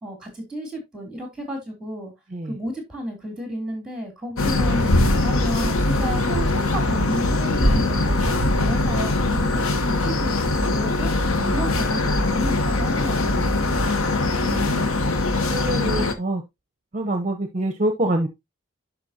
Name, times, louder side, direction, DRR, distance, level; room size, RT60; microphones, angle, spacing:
voice 1, 0.0-2.1 2.4-11.1 11.5-14.2, equal, 5° right, 3 dB, 2.9 m, -33 dB
sound 1, 4.4-16.1, left 2 dB, 80° left, 1.0 m, -21 dB
voice 2, 14.4-14.8 15.5-16.4 16.9-18.3, right 1 dB, 30° right, 6 dB, 0.7 m, -26 dB
11.0 x 5.1 x 2.7 m, 0.21 s
head